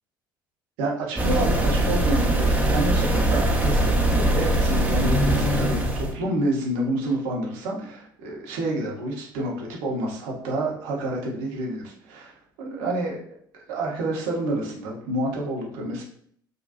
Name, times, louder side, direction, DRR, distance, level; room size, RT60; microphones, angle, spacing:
voice 1, 0.8-12.3 12.6-13.2 13.7-16.0, right 1 dB, 70° right, -2 dB, 0.9 m, -28 dB
sound 1, 1.2-6.1, right 1 dB, 10° right, 0.8 m, -21 dB
3.8 x 2.3 x 2.5 m, 0.62 s
hypercardioid pair, 60°, 11 cm